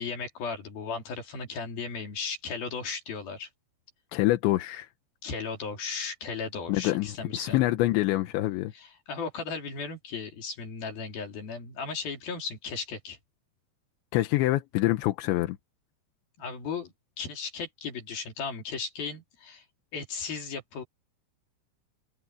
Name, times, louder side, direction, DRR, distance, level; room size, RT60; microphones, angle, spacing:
voice 1, 0.0-3.5 5.2-7.6 8.7-13.2 16.4-16.9 17.2-19.6 19.9-20.8, left 5 dB, 55° left, 4.9 m, -36 dB
voice 2, 4.1-4.9 6.7-8.7 14.1-15.6, left 17 dB, 90° left, 3.3 m, -26 dB
omnidirectional pair, 5.1 m